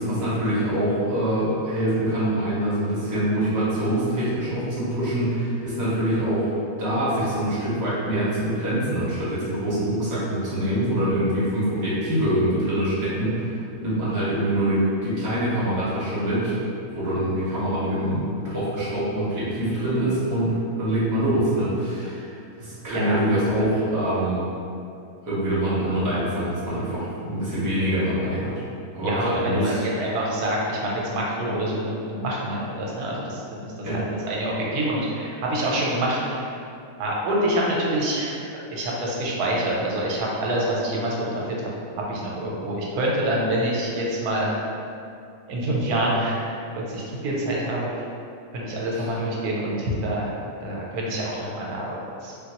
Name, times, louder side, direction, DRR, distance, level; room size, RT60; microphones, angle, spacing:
voice 1, 0.0-6.5 6.8-16.6 16.9-22.3 22.6-24.5 25.2-28.5 28.9-29.8 33.8-34.0 48.9-49.1, right 1 dB, 15° right, -10 dB, 0.7 m, -24 dB
voice 2, 22.9-23.2 29.0-36.5 37.0-38.4 38.7-41.7 42.1-44.6 45.5-46.5 46.9-48.0 48.5-50.3 50.6-52.3, right 1 dB, 85° right, -4 dB, 1.1 m, -26 dB
3.5 x 2.3 x 2.9 m, 2.6 s
omnidirectional pair, 1.6 m